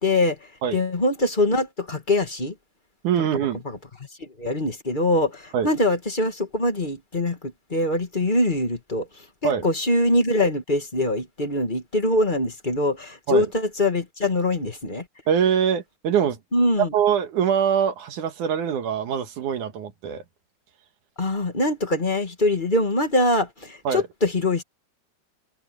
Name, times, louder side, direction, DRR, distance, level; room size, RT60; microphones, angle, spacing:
voice 1, 0.0-2.5 3.7-3.8 4.2-15.0 16.5-16.9 21.2-24.6, left 1 dB, 20° left, 1.7 m, -23 dB
voice 2, 3.0-3.6 5.5-5.7 9.4-9.6 13.3-13.5 15.3-16.4 16.8-20.2 23.8-24.0, right 8 dB, 80° right, 3.0 m, -23 dB
omnidirectional pair, 3.5 m